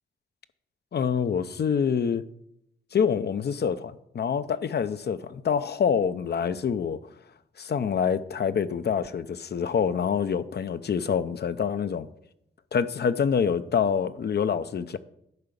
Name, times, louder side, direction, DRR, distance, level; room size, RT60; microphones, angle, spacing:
voice 1, 0.9-2.2 2.9-7.0 7.6-12.1 12.7-15.0, left 7 dB, 60° left, 0.6 m, -26 dB
11.0 x 4.7 x 6.7 m
cardioid pair, 55°, 19 cm